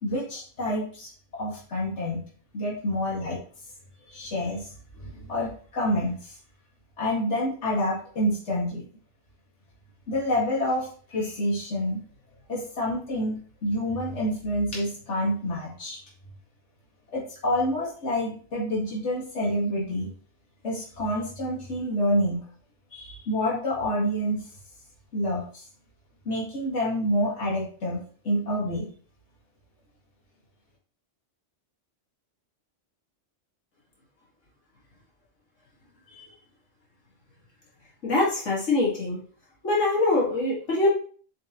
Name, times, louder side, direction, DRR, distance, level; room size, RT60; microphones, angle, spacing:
voice 1, 0.0-1.1 1.4-2.2 2.5-3.4 4.1-4.7 5.0-6.3 7.0-8.9 10.1-12.0 12.5-16.0 17.1-20.1 20.6-22.4 22.9-24.4 25.1-25.4 26.3-28.0 28.2-28.9, equal, 70° left, -4 dB, 2.2 m, -28 dB
voice 2, 38.0-39.2 39.6-40.9, left 2 dB, 85° left, -4 dB, 2.2 m, -24 dB
7.5 x 5.1 x 2.9 m, 0.43 s
omnidirectional pair, 1.2 m